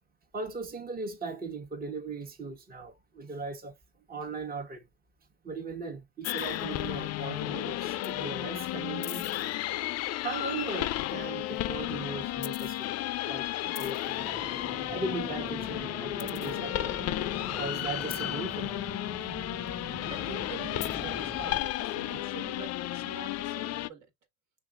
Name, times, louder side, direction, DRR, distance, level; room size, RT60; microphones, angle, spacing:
voice 1, 0.3-3.8 4.1-4.9 5.4-9.3 10.2-12.9 13.2-14.2 14.9-17.1 17.6-18.8, right 3 dB, 30° right, 1.1 m, -38 dB
sound 1, 6.2-23.9, left 15 dB, 55° left, 0.4 m, -33 dB
sound 2, 14.2-21.6, right 3 dB, 5° right, 0.4 m, -44 dB
voice 2, 20.1-24.1, right 6 dB, 65° right, 1.7 m, -45 dB
5.6 x 3.3 x 2.4 m
supercardioid pair, 70°, 32 cm